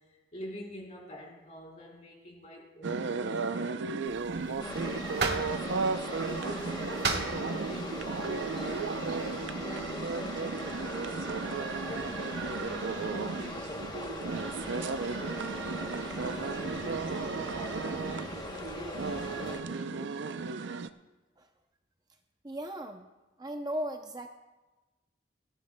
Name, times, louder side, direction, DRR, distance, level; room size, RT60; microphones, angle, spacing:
voice 1, 0.1-3.8 4.4-5.2 5.5-5.8 6.1-16.8 17.5-18.5 18.7-20.1, equal, 40° left, -3 dB, 4.0 m, -46 dB
sound 1, 2.8-20.9, right 4 dB, 80° right, 0.5 m, -35 dB
sound 2, 4.1-9.4, right 4 dB, 60° right, 1.3 m, -38 dB
sound 3, 4.6-19.6, left 2 dB, 20° left, 0.9 m, -41 dB
voice 2, 22.4-23.0 23.4-24.3, equal, 20° right, 5 dB, 0.5 m, -36 dB
29.5 x 10.5 x 2.2 m, 1.1 s
head